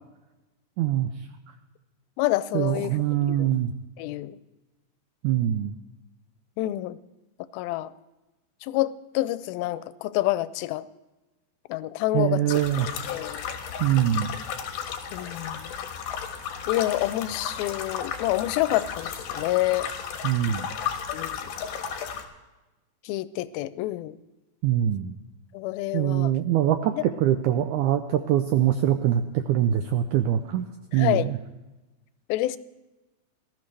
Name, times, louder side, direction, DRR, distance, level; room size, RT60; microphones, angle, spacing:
voice 1, 0.8-1.1 2.5-3.7 5.2-5.7 12.1-12.9 13.8-14.3 20.2-20.7 24.6-25.1 25.9-30.6 30.9-31.4, right 11 dB, 85° right, 8 dB, 1.7 m, -23 dB
voice 2, 2.2-3.5 4.0-4.4 6.6-7.0 7.5-7.9 8.6-10.9 11.7-12.6 13.1-13.4 15.1-15.7 16.7-19.9 21.1-21.4 23.0-24.2 25.5-26.3 26.9-27.0 30.9-31.3 32.3-32.6, left 16 dB, 90° left, 16 dB, 2.4 m, -28 dB
sound 1, 12.5-22.2, left 7 dB, 70° left, 2.7 m, -34 dB
19.0 x 13.5 x 3.3 m, 1.1 s
omnidirectional pair, 4.2 m